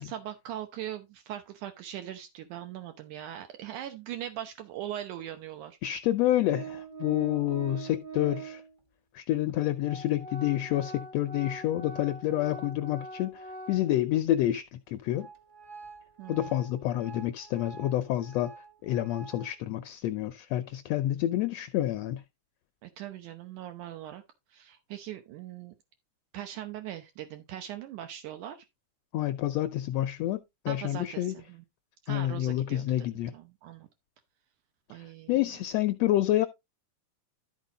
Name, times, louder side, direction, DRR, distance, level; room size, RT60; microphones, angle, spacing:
voice 1, 0.0-5.8 16.2-16.5 22.8-24.2 24.5-25.7 26.3-28.7 30.7-31.6 32.0-32.8 33.3-33.9 34.9-35.4, right 11 dB, 75° right, 2.4 m, -40 dB
voice 2, 5.8-8.6 9.1-15.3 16.3-18.5 18.8-22.2 29.1-31.3 32.1-33.3 35.3-36.5, left 13 dB, 80° left, 1.5 m, -28 dB
Organ, 6.5-8.7 9.5-9.6 9.8-14.2 14.6-14.7 15.1-19.5, right 4 dB, 45° right, 0.6 m, -44 dB
13.0 x 4.4 x 3.9 m
omnidirectional pair, 3.7 m